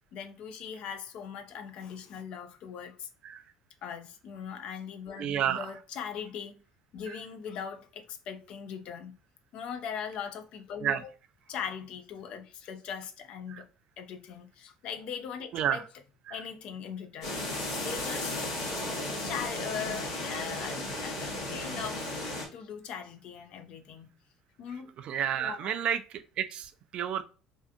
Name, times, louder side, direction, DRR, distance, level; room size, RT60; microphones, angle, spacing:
voice 1, 0.1-3.1 3.8-6.5 6.9-9.2 9.5-11.0 11.5-13.7 14.0-15.8 16.3-18.4 18.8-18.9 19.2-22.1 22.5-24.1 24.6-24.9 25.4-25.7, left 7 dB, 60° left, 0.4 m, -40 dB
voice 2, 5.2-5.7 10.8-11.0 13.5-13.6 15.5-15.8 16.3-16.4 25.0-26.0 26.4-27.2, right 9 dB, 55° right, 0.3 m, -30 dB
sound 1, 17.2-22.5, left 1 dB, 85° left, 0.9 m, -35 dB
2.6 x 2.4 x 2.4 m
hypercardioid pair, 70°, 2 cm